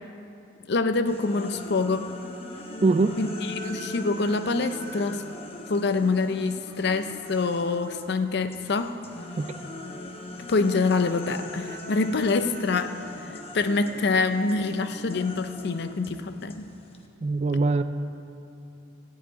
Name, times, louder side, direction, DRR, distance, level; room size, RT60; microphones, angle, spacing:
voice 1, 0.7-2.1 3.2-5.2 5.7-8.9 10.5-13.0 13.3-16.7, left 3 dB, 60° left, 9 dB, 0.5 m, -26 dB
sound 1, 1.1-8.1 8.5-17.1, left 1 dB, 30° left, 0.9 m, -40 dB
voice 2, 2.8-3.2 9.4-9.6 17.2-17.8, right 3 dB, 35° right, 10 dB, 0.3 m, -22 dB
14.5 x 4.9 x 9.0 m, 2.7 s
head